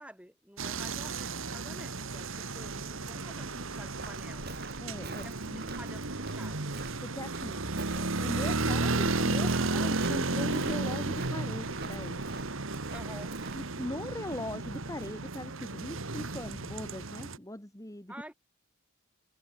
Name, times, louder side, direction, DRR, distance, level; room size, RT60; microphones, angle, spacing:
voice 1, 0.0-4.5 5.0-6.7 7.7-7.8 12.9-13.3 18.1-18.3, right 1 dB, 5° right, 7.3 m, -50 dB
sound 1, 0.6-17.4, right 3 dB, 65° right, 1.7 m, -33 dB
Walk footsteps, 4.0-13.7, right 3 dB, 45° right, 6.1 m, -46 dB
voice 2, 4.8-5.7 7.0-7.6 7.9-12.5 13.6-18.1, left 1 dB, 15° left, 1.8 m, -40 dB
head